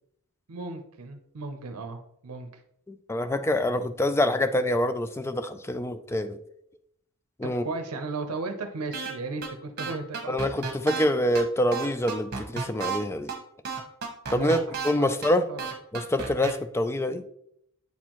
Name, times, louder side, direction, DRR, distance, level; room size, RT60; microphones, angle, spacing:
voice 1, 0.5-2.5 7.4-10.3 14.3-14.6 15.0-15.1 15.5-15.6, right 3 dB, 80° right, 6 dB, 0.6 m, -35 dB
voice 2, 2.9-6.4 7.4-7.6 10.3-13.3 14.3-14.6 14.8-15.4 15.9-17.2, left 1 dB, 10° left, 10 dB, 0.3 m, -26 dB
sound 1, 8.9-9.1 9.4-9.5 9.8-11.0 11.3-11.4 11.7-13.0 13.3-13.4 13.6-14.9 15.2-15.3 15.6-16.5, right 5 dB, 45° right, 1.1 m, -32 dB
8.2 x 4.4 x 3.0 m, 0.73 s
head